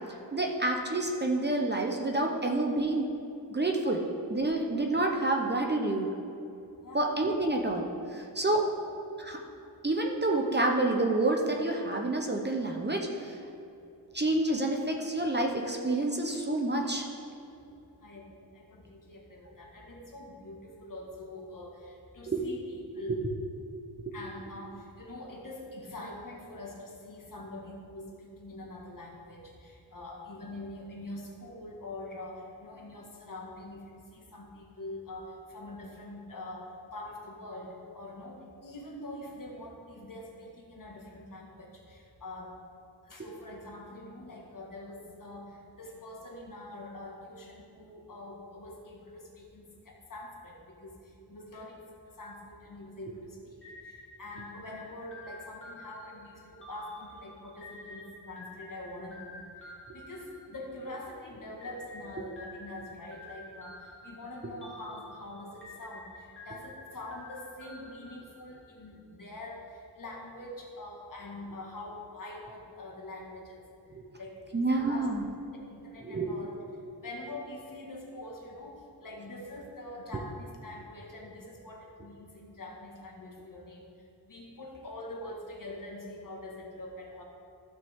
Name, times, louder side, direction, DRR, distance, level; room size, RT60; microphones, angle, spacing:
voice 1, 0.3-3.1 3.5-6.1 6.9-8.6 9.2-9.4 9.8-13.4 14.1-17.0 22.3-22.5 23.1-23.2 24.1-24.2 73.9-74.0 74.5-75.3 76.0-76.4, right 2 dB, 25° right, 1 dB, 0.9 m, -28 dB
voice 2, 18.0-23.2 24.1-42.5 43.1-50.9 51.3-51.8 52.2-53.4 53.8-59.4 59.6-69.7 70.0-73.6 74.2-75.1 75.3-76.6 77.0-78.7 79.0-83.9 84.2-87.2, left 1 dB, 50° left, -1 dB, 1.7 m, -44 dB
sound 1, 53.6-61.0 61.6-68.8, left 2 dB, 30° left, 2.0 m, -50 dB
14.5 x 5.9 x 3.7 m, 2.7 s
wide cardioid pair, 100°, 42 cm